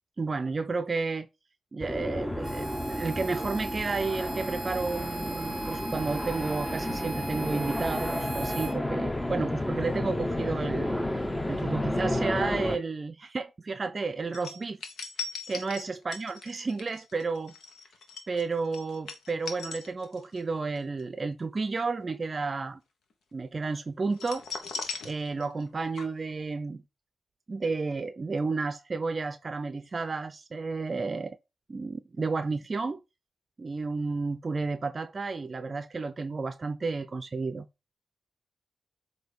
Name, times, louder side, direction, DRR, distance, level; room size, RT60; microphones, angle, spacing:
voice 1, 0.2-1.3 1.7-14.8 15.5-17.5 18.3-22.8 23.3-24.5 25.0-26.8 27.5-31.4 31.7-33.0 33.6-37.7, right 4 dB, 40° right, 0.5 m, -32 dB
sound 1, 1.8-12.8, left 1 dB, 15° left, 0.8 m, -32 dB
Harmonica, 2.4-8.8, right 3 dB, 5° right, 1.4 m, -38 dB
sound 2, 14.3-20.4 20.8-21.0 24.1-25.7 26.0-26.1, left 5 dB, 85° left, 1.0 m, -39 dB
7.7 x 2.7 x 4.8 m
cardioid pair, 70°, 0 cm